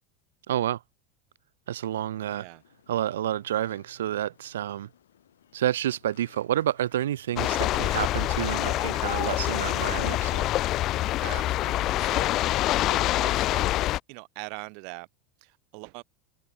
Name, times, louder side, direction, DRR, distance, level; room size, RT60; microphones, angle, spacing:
voice 1, 0.5-0.8 1.7-2.5 2.9-4.9 5.5-10.5, right 12 dB, 85° right, 0.4 m, -29 dB
sound 1, 2.0-7.9, left 10 dB, 90° left, 4.6 m, -61 dB
voice 2, 2.2-2.6 9.9-10.1 11.2-13.7 14.1-15.1 15.4-16.0, right 40 dB or more, 65° right, 2.9 m, -42 dB
sound 2, 7.4-14.0, left 15 dB, 50° left, 0.4 m, -26 dB
hypercardioid pair, 100°, 0 cm